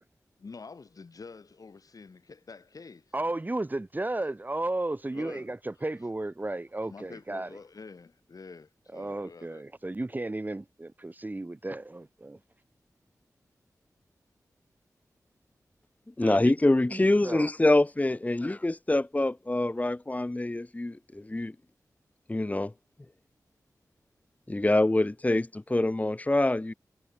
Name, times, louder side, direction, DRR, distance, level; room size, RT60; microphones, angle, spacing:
voice 1, 0.4-3.1 5.1-5.5 6.9-9.6, left 4 dB, 65° left, 6.9 m, -47 dB
voice 2, 3.1-7.5 8.9-12.4 16.2-16.5 16.9-17.5, right 2 dB, 30° right, 1.4 m, -34 dB
voice 3, 16.2-21.5 22.3-22.7 24.5-26.7, left 2 dB, 25° left, 1.1 m, -25 dB
cardioid pair, 55°, 7 cm